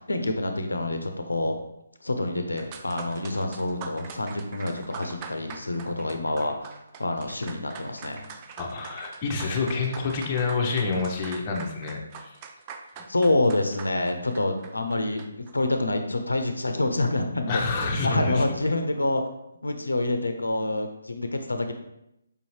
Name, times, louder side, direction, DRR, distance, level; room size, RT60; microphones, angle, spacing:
voice 1, 0.0-1.6 2.0-8.3 13.1-15.2 15.5-17.6 18.0-19.2 19.6-21.7, left 2 dB, 90° left, 6 dB, 0.5 m, -27 dB
sound 1, 2.6-15.5, right 6 dB, 25° right, 0.3 m, -43 dB
voice 2, 8.6-12.4 17.5-18.4, left 4 dB, 30° left, 0 dB, 0.7 m, -28 dB
5.0 x 2.7 x 3.1 m, 0.83 s
figure-of-eight pair, 150°, 0 cm